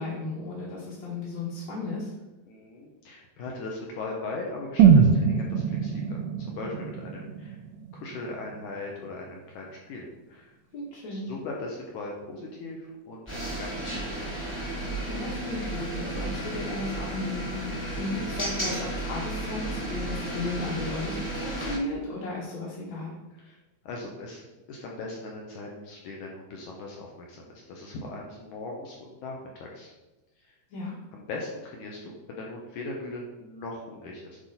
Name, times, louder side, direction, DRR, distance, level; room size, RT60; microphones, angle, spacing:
voice 1, 0.0-2.1 10.7-11.3 15.1-23.2 30.7-31.0, left 2 dB, 50° left, -7 dB, 2.3 m, -35 dB
voice 2, 2.5-6.2 6.5-7.6 7.9-10.5 11.1-14.4 23.4-23.6 23.9-29.9 30.4-30.5 31.1-34.4, left 2 dB, 75° left, -1 dB, 1.8 m, -39 dB
sound 1, 4.8-8.8 9.1-9.2, right 6 dB, 90° right, 2.8 m, -22 dB
sound 2, 13.3-21.8, right 1 dB, 20° left, 0.8 m, -33 dB
10.0 x 4.9 x 4.2 m, 1.1 s
omnidirectional pair, 4.9 m